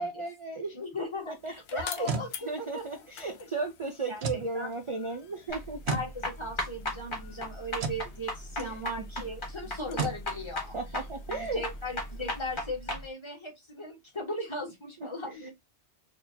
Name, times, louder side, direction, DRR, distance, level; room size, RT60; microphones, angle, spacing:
voice 1, 0.0-0.8 1.3-2.1 2.4-6.0 8.6-8.8 10.7-11.6 15.3-15.5, right 3 dB, 40° right, 0.5 m, -35 dB
voice 2, 0.7-2.8 4.1-4.2 4.5-4.7 5.9-10.7 11.3-15.5, left 1 dB, 25° left, 1.5 m, -38 dB
sound 1, 0.9-12.6, left 8 dB, 70° left, 0.9 m, -50 dB
sound 2, 1.8-2.3 4.2-4.5 5.9-6.1 7.8-8.0 10.0-10.2, right 4 dB, 70° right, 1.0 m, -32 dB
sound 3, 5.5-13.0, left 1 dB, 45° left, 1.7 m, -36 dB
4.2 x 2.9 x 2.7 m
omnidirectional pair, 1.2 m